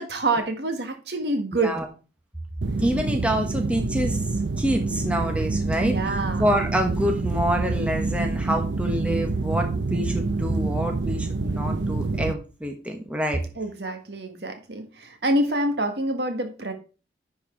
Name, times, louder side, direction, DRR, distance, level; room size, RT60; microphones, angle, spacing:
voice 1, 0.0-1.7 5.8-6.4 13.6-16.7, right 2 dB, 75° right, 6 dB, 1.7 m, -26 dB
voice 2, 1.5-1.9 2.8-4.2 4.6-13.4, equal, 5° right, 3 dB, 1.1 m, -27 dB
sound 1, 2.6-12.3, right 3 dB, 90° right, 0.6 m, -27 dB
10.5 x 4.6 x 4.5 m, 0.33 s
head